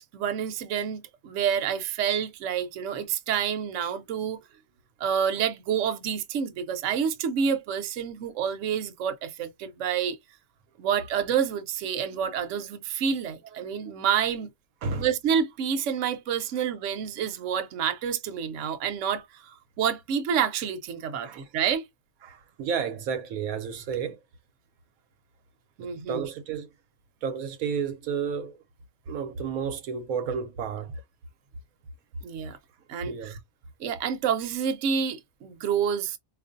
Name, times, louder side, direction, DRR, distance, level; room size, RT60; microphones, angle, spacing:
voice 1, 0.0-4.4 5.0-10.2 10.8-14.5 15.0-21.8 25.8-26.3 32.2-32.6 32.9-33.4 33.8-36.2, right 7 dB, 65° right, 1.0 m, -28 dB
voice 2, 21.1-21.5 22.2-24.2 25.8-26.7 27.2-28.6 29.1-31.0 33.0-33.4, right 6 dB, 90° right, 1.1 m, -32 dB
4.6 x 2.5 x 2.5 m
omnidirectional pair, 1.5 m